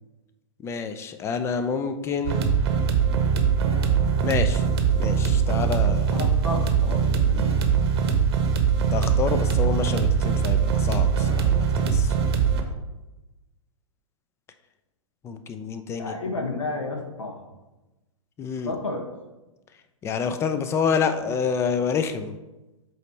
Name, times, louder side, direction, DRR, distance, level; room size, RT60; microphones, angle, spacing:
voice 1, 0.6-2.4 4.2-4.7 5.0-6.1 8.9-12.1 15.2-16.3 18.4-18.7 20.0-22.4, left 6 dB, 15° left, 9 dB, 0.4 m, -28 dB
sound 1, 2.2-12.6, right 6 dB, 50° right, 0.9 m, -22 dB
voice 2, 6.1-7.5 16.0-17.4 18.6-19.0, left 2 dB, 70° left, 2 dB, 1.2 m, -31 dB
7.8 x 2.9 x 4.5 m, 1.0 s
figure-of-eight pair, 110°, 17 cm